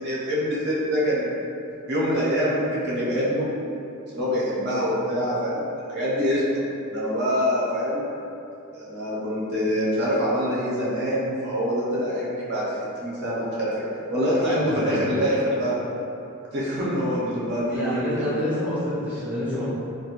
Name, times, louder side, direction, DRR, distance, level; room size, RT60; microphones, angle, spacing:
voice 1, 0.0-1.4 1.9-3.5 4.1-6.6 6.9-8.1 8.7-12.7 13.0-13.7 14.1-15.8 16.5-18.4, equal, 55° right, -8 dB, 0.6 m, -25 dB
voice 2, 14.6-15.0 17.7-19.7, left 1 dB, 5° right, -11 dB, 0.6 m, -28 dB
2.4 x 2.1 x 2.9 m, 2.7 s
head